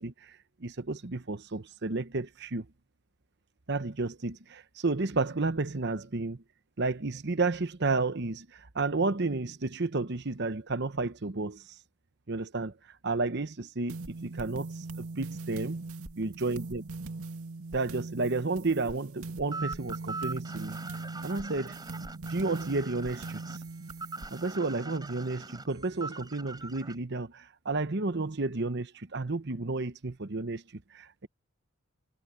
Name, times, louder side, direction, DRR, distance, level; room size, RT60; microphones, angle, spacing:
voice 1, 0.0-2.7 3.7-6.4 6.8-11.6 12.3-12.7 13.0-14.0 14.2-15.8 16.2-16.8 17.7-20.8 21.2-21.8 22.3-23.6 24.3-31.3, right 3 dB, 50° right, 0.9 m, -32 dB
sound 1, 13.9-24.6, right 3 dB, 80° right, 2.2 m, -41 dB
sound 2, 19.5-27.0, right 3 dB, 20° right, 3.8 m, -42 dB
head